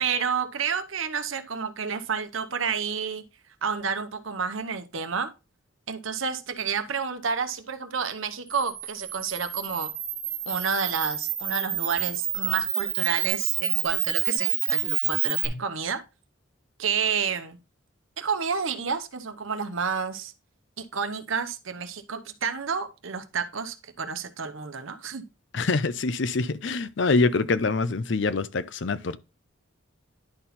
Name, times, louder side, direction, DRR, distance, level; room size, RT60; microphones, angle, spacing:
voice 1, 0.0-3.2 3.6-5.3 5.9-9.9 10.5-16.0 16.8-17.6 18.2-20.3 20.8-25.2, right 6 dB, 75° right, 0.9 m, -30 dB
Camera, 8.5-15.5, right 10 dB, 35° right, 1.5 m, -28 dB
voice 2, 25.5-29.2, left 3 dB, 60° left, 0.6 m, -25 dB
10.5 x 4.3 x 4.1 m
head